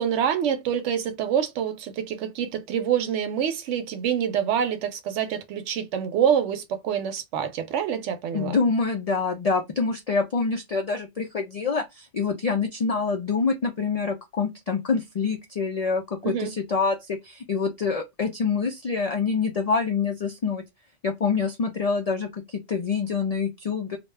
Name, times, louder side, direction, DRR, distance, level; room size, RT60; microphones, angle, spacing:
voice 1, 0.0-8.6 16.2-16.5, right 8 dB, 80° right, 0.9 m, -26 dB
voice 2, 8.3-20.6 21.0-24.0, left 5 dB, 70° left, 0.3 m, -26 dB
2.5 x 2.1 x 3.2 m
omnidirectional pair, 1.2 m